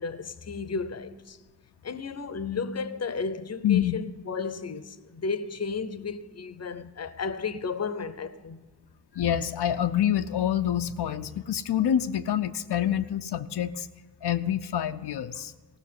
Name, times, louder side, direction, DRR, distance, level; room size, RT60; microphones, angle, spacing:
voice 1, 0.0-1.4 1.8-8.6, left 5 dB, 40° left, 0.7 m, -33 dB
voice 2, 3.6-4.0 9.1-13.9 14.2-15.5, left 10 dB, 85° left, 0.5 m, -26 dB
16.5 x 6.2 x 9.3 m
wide cardioid pair, 85°, 39 cm